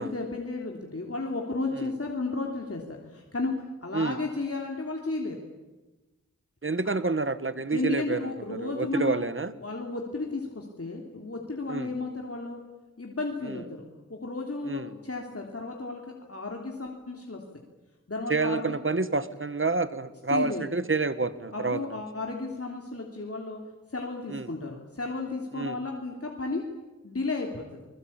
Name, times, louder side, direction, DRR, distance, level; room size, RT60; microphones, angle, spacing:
voice 1, 0.0-3.5 3.8-5.4 7.7-9.2 9.6-12.6 13.0-13.8 14.1-16.0 16.3-17.4 18.1-18.7 20.3-20.7 21.5-23.6 23.9-26.7 27.0-27.9, left 3 dB, 50° left, 0 dB, 3.3 m, -33 dB
voice 2, 6.6-9.5 11.7-11.9 13.4-13.6 14.6-14.9 18.3-22.0 24.3-24.5 25.5-25.8, right 3 dB, 45° right, 13 dB, 1.6 m, -29 dB
27.5 x 21.5 x 8.8 m, 1.1 s
wide cardioid pair, 50°, 29 cm